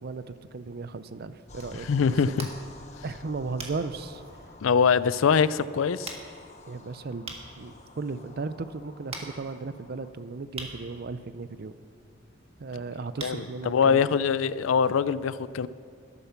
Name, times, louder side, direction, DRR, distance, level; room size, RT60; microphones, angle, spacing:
voice 1, 0.0-1.9 3.0-4.2 6.7-7.3 7.6-11.7 12.6-14.1, right 4 dB, 50° right, 0.5 m, -36 dB
sound 1, 1.4-14.6, right 3 dB, 30° right, 1.6 m, -46 dB
sound 2, 1.5-10.1, left 2 dB, 35° left, 1.0 m, -50 dB
voice 2, 1.9-2.5 4.6-6.2 13.2-15.7, left 6 dB, 85° left, 0.4 m, -23 dB
13.0 x 12.5 x 5.8 m
head